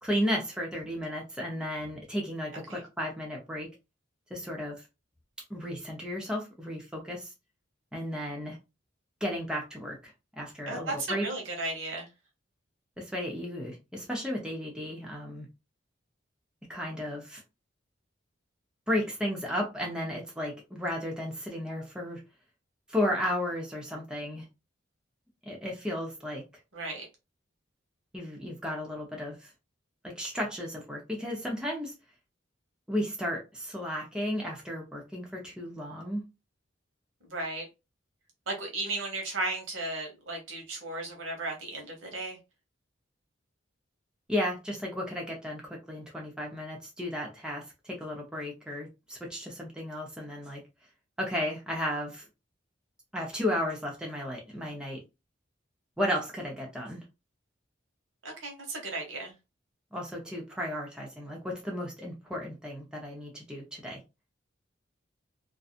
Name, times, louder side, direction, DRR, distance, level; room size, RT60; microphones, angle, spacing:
voice 1, 0.0-3.7 4.3-4.8 5.5-7.3 7.9-8.6 9.2-10.0 10.3-11.3 13.0-15.5 16.7-17.4 18.9-22.2 22.9-24.5 25.4-26.4 28.1-29.5 30.0-31.9 32.9-36.2 44.3-50.6 51.2-52.3 53.1-55.0 56.0-57.0 59.9-64.0, equal, 5° right, 0.6 m, -34 dB
voice 2, 10.7-12.1 26.7-27.1 37.2-37.7 38.5-42.4 58.2-59.3, right 2 dB, 90° right, 1.1 m, -35 dB
2.6 x 2.3 x 2.4 m
head